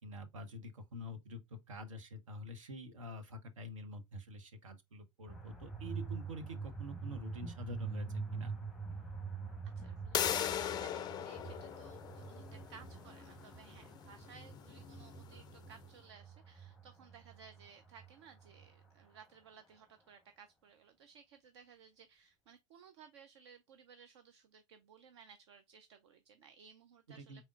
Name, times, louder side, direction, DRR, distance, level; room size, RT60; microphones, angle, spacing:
voice 1, 0.0-8.1 8.3-8.5 27.1-27.4, equal, 75° right, 0.9 m, -47 dB
sound 1, 5.3-19.2, right 4 dB, ahead, 0.9 m, -46 dB
voice 2, 9.8-27.5, right 6 dB, 55° right, 0.5 m, -59 dB
sound 2, 10.1-15.7, left 10 dB, 25° left, 0.4 m, -40 dB
4.3 x 3.5 x 2.4 m
figure-of-eight pair, 85°, 17 cm